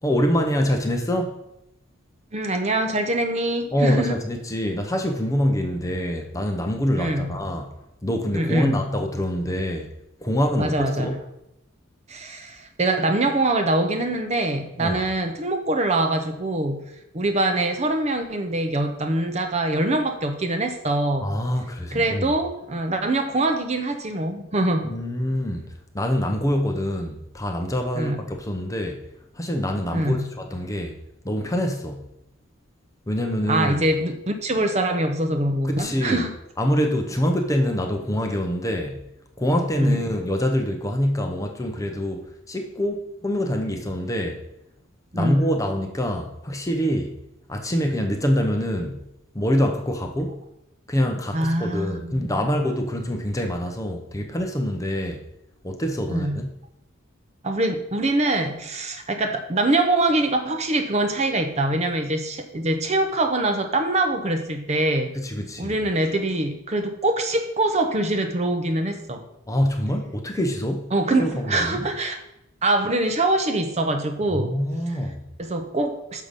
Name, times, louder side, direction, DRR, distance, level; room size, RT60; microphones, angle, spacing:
voice 1, 0.0-1.4 3.7-7.7 8.0-9.9 10.2-11.2 14.8-15.0 21.2-22.3 24.8-25.7 25.9-29.0 29.4-31.0 31.2-32.0 33.1-33.8 35.6-36.2 36.6-39.0 39.4-44.4 45.1-47.2 47.5-49.0 49.3-50.4 50.9-55.3 55.6-56.5 65.2-65.8 69.5-70.9 71.2-71.9 74.3-75.3, equal, 15° left, 0.7 m, -25 dB
voice 2, 2.3-4.2 7.0-7.3 8.3-8.8 10.6-11.2 12.1-16.8 17.1-21.3 21.9-24.9 28.0-28.2 29.9-30.3 33.5-36.3 39.8-40.0 45.1-45.6 51.3-52.4 56.1-56.4 57.4-65.1 65.6-69.2 70.4-70.5 70.9-72.2 72.6-74.6 75.4-76.2, right 2 dB, 30° right, 0.7 m, -24 dB
6.5 x 5.6 x 5.2 m
head